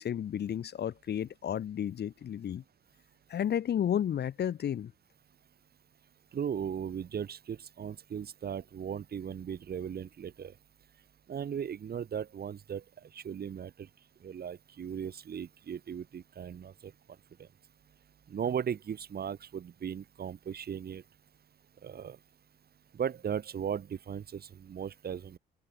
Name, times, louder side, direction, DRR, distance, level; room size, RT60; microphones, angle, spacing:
voice 1, 0.0-2.6 3.3-4.9, left 9 dB, 55° left, 1.3 m, -32 dB
voice 2, 6.3-10.5 11.3-13.9 14.2-16.9 17.4-17.5 18.3-21.0 21.8-22.2 22.9-25.4, right 8 dB, 50° right, 2.3 m, -37 dB
open air
cardioid pair, 90°, 20 cm